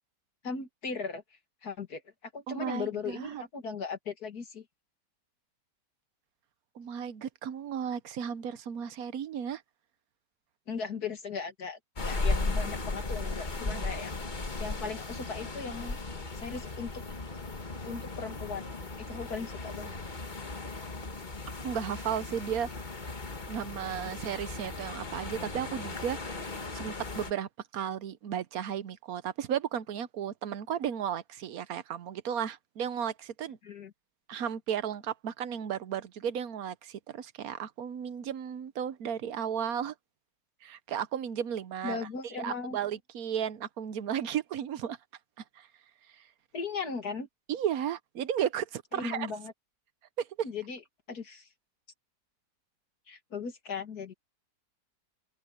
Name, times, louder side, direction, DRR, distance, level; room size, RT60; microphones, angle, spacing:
voice 1, 0.4-1.2 1.6-4.6 10.7-14.2 14.6-16.0 16.3-17.0 17.8-18.7 19.1-19.9 33.6-33.9 41.8-42.8 46.5-47.3 49.0-49.5 50.4-50.8 51.1-51.5 53.1-54.1, left 5 dB, 60° left, 2.4 m, -38 dB
voice 2, 2.5-3.4 6.7-9.6 13.7-13.9 21.6-22.7 23.5-33.6 34.3-39.9 40.6-42.1 42.4-45.0 45.6-45.7 47.5-49.3 50.2-50.3, right 9 dB, 60° right, 1.2 m, -34 dB
sound 1, 12.0-27.3, left 3 dB, 30° left, 1.6 m, -36 dB
open air
omnidirectional pair, 1.9 m